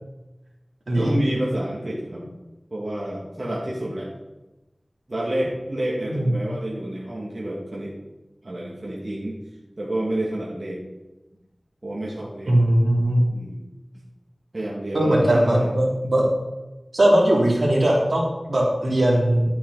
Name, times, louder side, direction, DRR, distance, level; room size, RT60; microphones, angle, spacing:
voice 1, 1.0-2.3 2.7-4.1 5.1-7.9 8.4-9.4 9.8-10.8 11.8-12.6 13.3-13.6 14.5-15.7, right 1 dB, 50° right, -5 dB, 2.4 m, -29 dB
voice 2, 12.5-13.2 14.9-16.2 16.9-19.5, right 1 dB, 75° right, -4 dB, 3.2 m, -19 dB
12.0 x 8.5 x 4.2 m, 1.0 s
wide cardioid pair, 50°, 0 cm